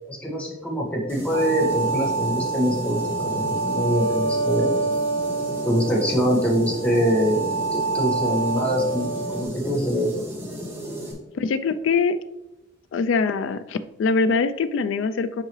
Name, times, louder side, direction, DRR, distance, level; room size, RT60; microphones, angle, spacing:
voice 1, 0.1-4.7 5.6-10.1, equal, 5° left, -4 dB, 1.3 m, -24 dB
sound 1, 1.1-11.1, equal, 10° right, 1.2 m, -35 dB
sound 2, 1.3-9.4, right 3 dB, 85° right, 0.5 m, -27 dB
voice 2, 11.3-12.2 12.9-15.4, left 4 dB, 85° left, 11 dB, 0.3 m, -23 dB
7.4 x 4.7 x 3.1 m, 0.97 s
head